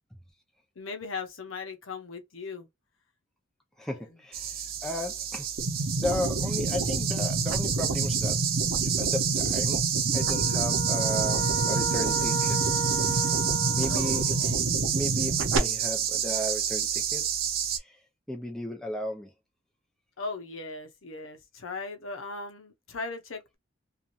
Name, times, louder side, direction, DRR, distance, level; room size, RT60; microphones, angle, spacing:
voice 1, 0.8-2.7 13.9-14.6 20.2-23.6, left 3 dB, 85° left, 0.7 m, -38 dB
voice 2, 3.8-4.5 4.8-5.5 5.9-9.8 10.1-12.6 13.1-13.3 13.8-14.3 14.9-17.2 17.8-18.0 18.3-19.3, left 1 dB, 5° left, 0.7 m, -34 dB
sound 1, 4.3-17.8, right 9 dB, 50° right, 0.6 m, -29 dB
sound 2, 5.6-15.6, right 2 dB, 80° right, 0.7 m, -30 dB
sound 3, 10.1-14.5, right 4 dB, 20° left, 1.0 m, -34 dB
2.9 x 2.4 x 2.5 m
head